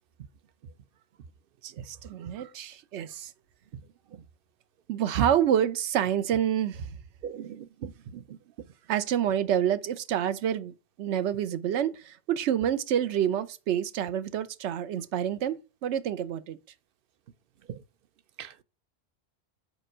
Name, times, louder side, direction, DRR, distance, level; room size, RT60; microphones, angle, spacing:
voice 1, 1.6-3.3 4.9-6.9 8.9-16.6, right 10 dB, 85° right, 0.9 m, -28 dB
voice 2, 7.2-7.9 18.4-18.6, right 8 dB, 60° right, 0.7 m, -39 dB
5.2 x 4.4 x 6.0 m
omnidirectional pair, 1.1 m